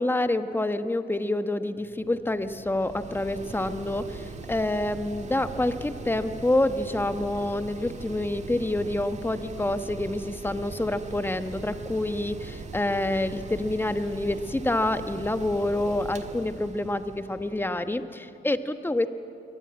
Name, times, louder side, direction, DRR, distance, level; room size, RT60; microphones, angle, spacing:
voice 1, 0.0-4.2 4.5-19.1, left 1 dB, 10° left, 9 dB, 1.2 m, -27 dB
Mechanical fan, 1.8-18.1, right 4 dB, 35° right, 1.7 m, -41 dB
22.0 x 19.0 x 8.8 m, 2.7 s
cardioid pair, 90°, 20 cm